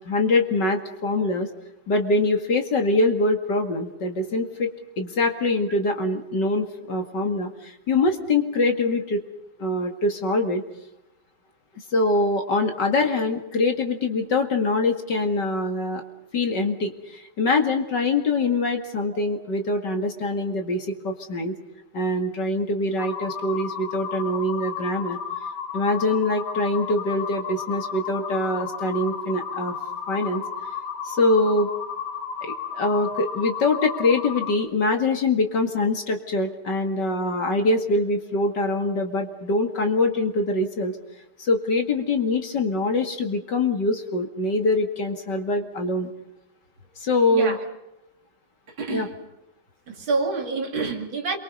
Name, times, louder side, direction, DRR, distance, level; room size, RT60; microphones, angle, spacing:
voice 1, 0.0-1.5 1.9-4.7 5.0-9.2 9.6-10.6 11.9-16.0 16.3-21.6 21.9-25.2 25.7-29.7 30.1-30.4 31.0-31.7 32.4-40.9 41.4-46.1 47.0-47.6 48.9-49.1, left 2 dB, 55° left, 4 dB, 2.6 m, -24 dB
sound 1, 23.0-34.6, left 7 dB, 85° left, 3.0 m, -33 dB
voice 2, 48.7-49.1 49.9-51.4, right 3 dB, 65° right, 4 dB, 3.3 m, -27 dB
29.0 x 23.5 x 5.5 m, 0.88 s
omnidirectional pair, 2.4 m